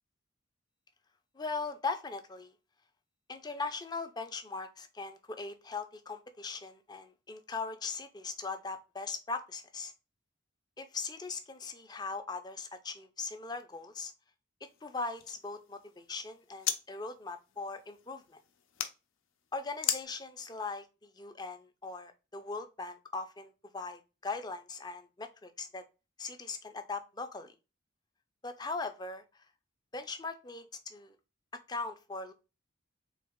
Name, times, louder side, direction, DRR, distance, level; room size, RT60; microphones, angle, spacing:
voice 1, 1.3-2.5 3.3-9.9 10.8-14.1 14.8-18.4 19.5-25.8 26.2-27.5 28.4-29.5 29.9-31.2 31.7-32.3, left 4 dB, 20° left, 8 dB, 0.4 m, -40 dB
sound 1, 14.7-16.8 17.1-18.9 19.8-20.0, left 10 dB, 85° left, 0.6 m, -38 dB
3.9 x 2.8 x 3.5 m, 0.29 s
head